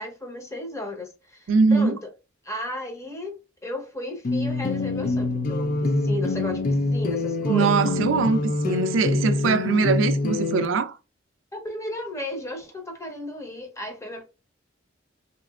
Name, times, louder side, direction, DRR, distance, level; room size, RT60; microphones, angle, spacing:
voice 1, 0.0-2.0 2.4-7.9 11.5-14.2, left 1 dB, 15° left, 0.8 m, -34 dB
voice 2, 1.5-2.0 7.5-11.0, right 4 dB, 75° right, 0.4 m, -22 dB
sound 1, 4.2-10.7, left 2 dB, 45° left, 0.4 m, -25 dB
3.2 x 2.9 x 2.3 m
head